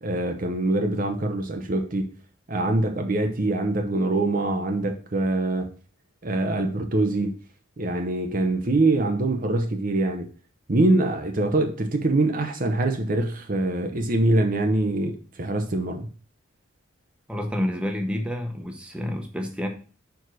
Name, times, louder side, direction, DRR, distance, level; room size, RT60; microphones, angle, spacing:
voice 1, 0.0-2.1 2.5-5.7 6.2-7.4 7.8-10.3 10.7-16.1, right 2 dB, 40° right, 0.7 m, -24 dB
voice 2, 17.3-19.7, left 1 dB, 5° right, 0.9 m, -29 dB
5.3 x 4.7 x 6.2 m
head